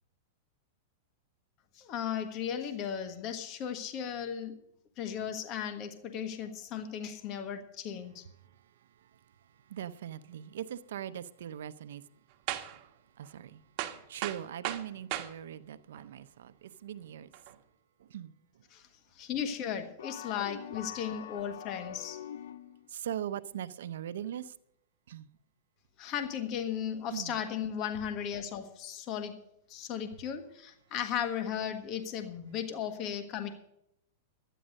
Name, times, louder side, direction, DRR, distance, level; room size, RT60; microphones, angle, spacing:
voice 1, 1.7-4.5 5.0-8.3 18.7-18.9 19.1-22.2 26.0-29.4 29.7-33.6, left 8 dB, 35° left, 1.4 m, -36 dB
voice 2, 9.7-12.0 12.7-12.9 13.2-13.6 13.9-17.6 18.0-18.3 22.9-24.5 25.1-25.3 27.1-27.4, right 10 dB, 80° right, 0.7 m, -41 dB
sound 1, 12.5-12.8 13.2-13.3 13.8-15.3 15.9-16.0 17.3-17.5, right 13 dB, 45° right, 1.4 m, -36 dB
sound 2, 20.0-22.9, left 9 dB, 85° left, 0.8 m, -44 dB
12.5 x 10.0 x 6.4 m
supercardioid pair, 145°, 0 cm